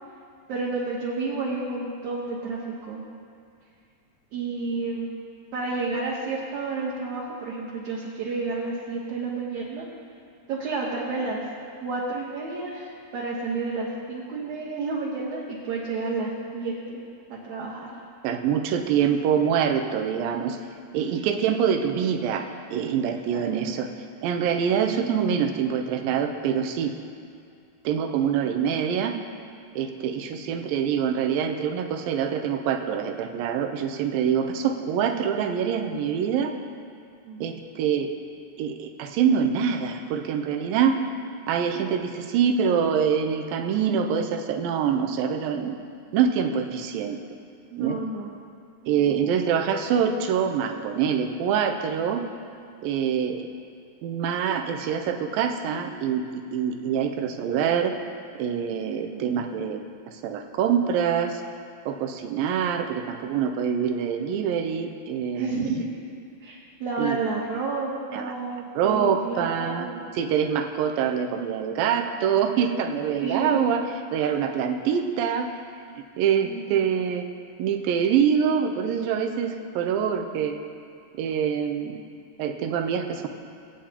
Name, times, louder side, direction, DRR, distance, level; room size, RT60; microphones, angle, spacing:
voice 1, 0.5-3.0 4.3-5.1 5.5-9.9 10.5-11.4 11.8-16.7 17.3-17.9 23.3-23.7 37.2-37.4 47.7-48.3 48.8-49.1 59.0-59.2 65.3-65.9 66.4-70.0 72.7-72.8 73.2-73.7 74.2-74.3 76.4-76.7, right 3 dB, 65° right, -5 dB, 2.3 m, -31 dB
voice 2, 18.2-20.6 20.9-22.4 22.7-23.9 24.2-26.9 27.9-29.2 29.8-36.5 37.4-38.1 38.6-40.9 41.5-45.7 46.1-47.2 47.8-48.0 48.9-52.2 52.8-53.4 54.0-58.0 58.4-59.8 60.2-61.4 61.9-65.9 67.0-67.2 68.1-68.3 68.8-73.9 74.1-75.5 76.2-77.3 77.6-80.6 81.1-82.0 82.4-83.3, right 7 dB, 80° right, 5 dB, 2.4 m, -25 dB
20.5 x 8.8 x 2.9 m, 2.4 s
omnidirectional pair, 4.2 m